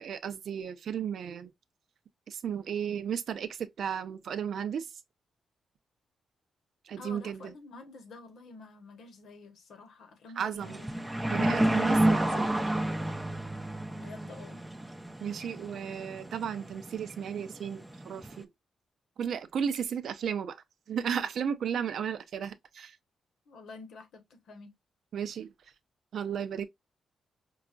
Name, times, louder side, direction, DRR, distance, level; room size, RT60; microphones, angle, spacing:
voice 1, 0.0-1.5 2.3-3.5 3.8-4.9 6.9-7.4 10.4-10.8 11.3-12.5 15.2-18.5 19.2-20.6 20.9-22.9 25.1-25.5 26.1-26.7, right 8 dB, 70° right, 0.5 m, -34 dB
voice 2, 7.0-10.9 13.9-14.6 23.5-24.7, left 3 dB, 75° left, 1.1 m, -49 dB
sound 1, 10.6-18.4, right 1 dB, 10° right, 0.5 m, -30 dB
4.7 x 2.3 x 2.4 m
cardioid pair, 90°, 0 cm